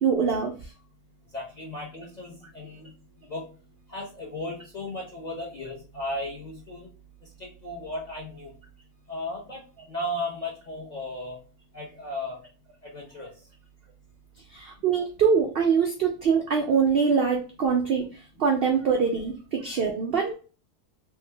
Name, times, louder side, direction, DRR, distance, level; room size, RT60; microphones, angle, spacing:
voice 1, 0.0-0.5 14.5-18.1 18.4-20.3, right 6 dB, 85° right, 3 dB, 0.5 m, -23 dB
voice 2, 1.3-2.9 3.3-3.5 3.9-6.9 7.6-8.5 9.1-9.6 9.9-11.4 11.7-12.4 12.9-13.3, left 1 dB, 50° left, -2 dB, 0.5 m, -35 dB
3.3 x 2.1 x 3.2 m, 0.36 s
omnidirectional pair, 1.6 m